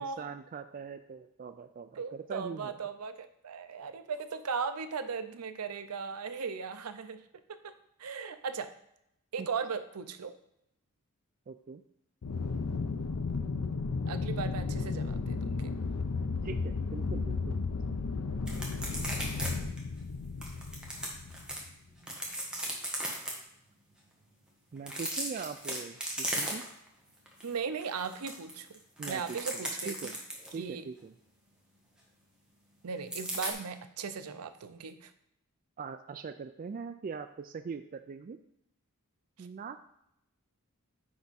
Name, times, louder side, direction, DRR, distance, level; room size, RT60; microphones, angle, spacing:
voice 1, 0.0-2.8 9.4-9.5 11.5-11.8 16.4-17.6 24.7-26.6 29.0-30.2 30.5-31.1 35.8-38.4 39.4-39.8, right 5 dB, 40° right, 9 dB, 0.3 m, -42 dB
voice 2, 2.0-7.2 7.5-7.7 8.0-8.7 9.3-10.4 14.1-15.7 27.4-28.8 29.1-30.0 30.6-30.8 32.8-35.1 39.4-39.5, right 5 dB, 85° right, 10 dB, 0.6 m, -37 dB
Aircraft, 12.2-21.7, left 4 dB, 90° left, 0.6 m, -34 dB
sound 1, 18.5-19.5 19.8-19.9 20.4-21.6 22.0-23.3 24.8-26.9 27.3-27.5 27.8-30.6 33.1-33.5, right 1 dB, 5° right, 1.3 m, -36 dB
9.5 x 3.5 x 4.1 m, 0.79 s
head